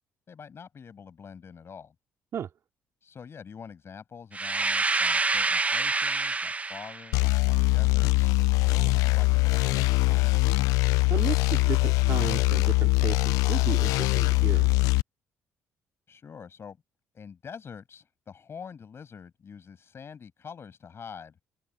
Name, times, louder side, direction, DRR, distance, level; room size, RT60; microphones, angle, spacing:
voice 1, 0.3-1.9 3.0-8.3 8.7-10.5 16.1-16.8 17.1-21.4, left 6 dB, 45° left, 6.5 m, -45 dB
sound 1, 4.3-7.1, right 3 dB, 25° right, 0.8 m, -27 dB
sound 2, 7.1-15.0, left 25 dB, 85° left, 0.4 m, -23 dB
voice 2, 11.1-14.7, right 8 dB, 60° right, 2.6 m, -34 dB
open air
supercardioid pair, 70°, 6 cm